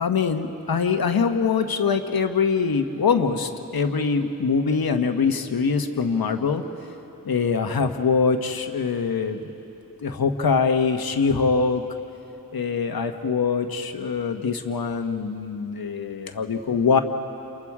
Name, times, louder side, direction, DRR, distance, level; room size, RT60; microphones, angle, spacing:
voice 1, 0.0-6.6 7.2-9.4 10.0-11.8 12.5-17.0, left 5 dB, 90° left, 6 dB, 1.3 m, -23 dB
29.0 x 28.5 x 4.9 m, 3.0 s
wide cardioid pair, 100°, 35 cm